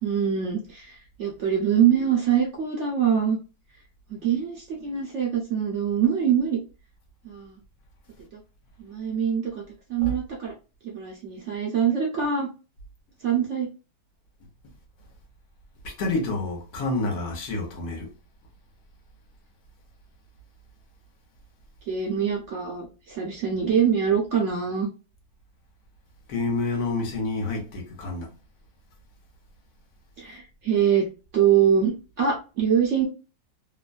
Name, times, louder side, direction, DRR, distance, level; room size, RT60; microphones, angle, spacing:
voice 1, 0.0-3.4 4.1-6.6 7.2-7.6 8.3-8.4 8.8-9.6 9.9-10.5 10.8-12.5 13.2-13.7 21.9-24.9 30.2-31.1 31.3-33.1, right 8 dB, 60° right, 0.8 m, -24 dB
voice 2, 16.0-18.1 26.3-28.3, left 3 dB, 65° left, 1.2 m, -28 dB
3.0 x 2.1 x 2.4 m
omnidirectional pair, 1.8 m